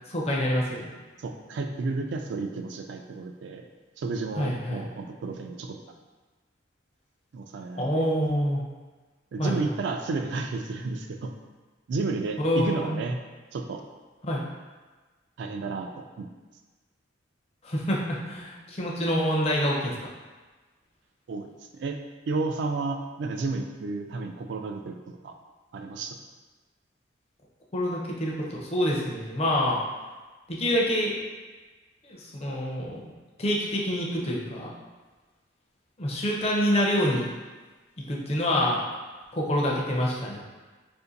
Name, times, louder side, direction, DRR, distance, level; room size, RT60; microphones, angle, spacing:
voice 1, 0.1-0.9 4.4-4.9 7.7-8.6 9.4-9.6 12.4-13.0 14.2-14.4 17.6-20.1 27.7-29.8 30.5-31.1 32.0-33.1 33.4-34.7 36.0-37.3 38.1-38.8 39.3-40.4, equal, 30° left, -3 dB, 0.5 m, -26 dB
voice 2, 1.2-3.6 4.0-5.8 7.3-8.1 9.3-11.3 11.9-13.2 13.5-13.8 15.4-16.3 21.3-22.0 22.3-24.9 25.2-25.3 25.7-26.2, right 3 dB, 60° right, 4 dB, 0.3 m, -32 dB
2.6 x 2.5 x 3.8 m, 1.3 s
head